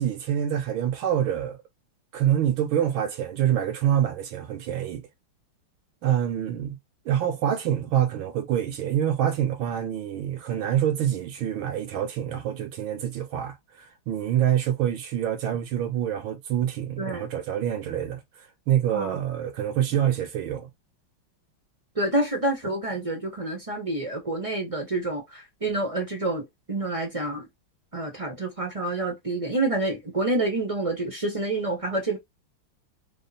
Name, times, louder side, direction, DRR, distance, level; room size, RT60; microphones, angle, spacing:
voice 1, 0.0-1.6 2.1-5.0 6.0-6.8 7.0-18.2 18.7-20.7, right 10 dB, 75° right, 1.5 m, -26 dB
voice 2, 18.9-19.2 22.0-27.5 27.9-32.2, right 2 dB, 30° right, 0.6 m, -28 dB
3.6 x 2.2 x 4.1 m
omnidirectional pair, 2.3 m